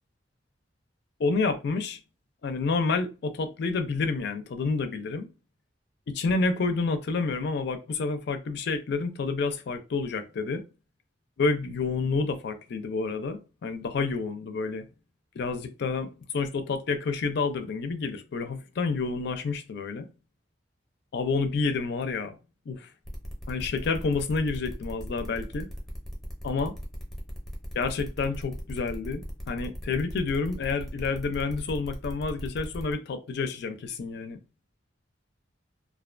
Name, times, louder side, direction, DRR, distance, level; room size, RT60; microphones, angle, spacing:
voice 1, 1.2-2.0 2.4-5.3 6.1-10.6 11.4-14.9 15.4-20.1 21.1-22.4 22.7-22.9 23.5-25.7 26.4-26.7 27.7-34.4, left 4 dB, 65° left, 0.4 m, -29 dB
sound 1, 23.0-32.9, equal, ahead, 0.6 m, -39 dB
2.4 x 2.2 x 2.4 m
head